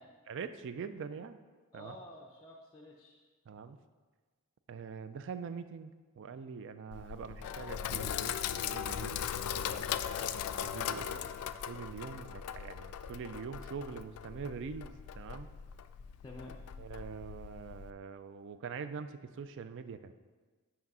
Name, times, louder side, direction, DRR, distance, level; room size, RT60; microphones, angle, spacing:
voice 1, 0.3-1.4 1.7-2.0 3.5-3.8 4.7-5.9 6.2-9.3 9.6-9.9 10.6-11.2 11.7-15.5 16.8-20.1, right 5 dB, 55° right, 12 dB, 0.4 m, -43 dB
voice 2, 1.7-3.3 11.0-11.3 16.2-16.6, left 1 dB, 20° left, -1 dB, 0.5 m, -51 dB
Sink (filling or washing), 6.9-17.9, left 9 dB, 75° left, 0.3 m, -39 dB
6.0 x 4.8 x 5.4 m, 1.4 s
head